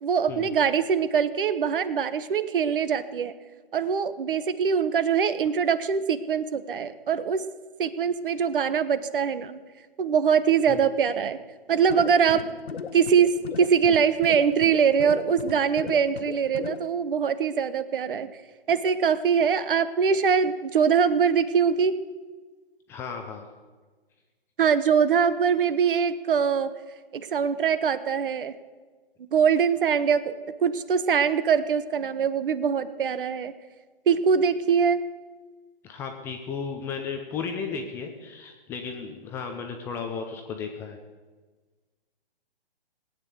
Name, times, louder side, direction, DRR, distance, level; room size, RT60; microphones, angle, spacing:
voice 1, 0.0-3.3 3.7-7.5 7.8-9.6 10.0-11.4 11.7-12.5 12.9-18.3 18.7-22.0 24.6-26.7 27.1-28.5 29.3-30.4 30.6-33.5 34.1-35.0, right 7 dB, 60° right, 14 dB, 1.2 m, -23 dB
sound 1, 11.8-16.9, left 6 dB, 80° left, 1.0 m, -37 dB
voice 2, 22.9-23.5 35.8-41.0, left 5 dB, 10° left, 4 dB, 0.5 m, -34 dB
18.5 x 9.0 x 8.0 m, 1.4 s
hypercardioid pair, 145°, 30 cm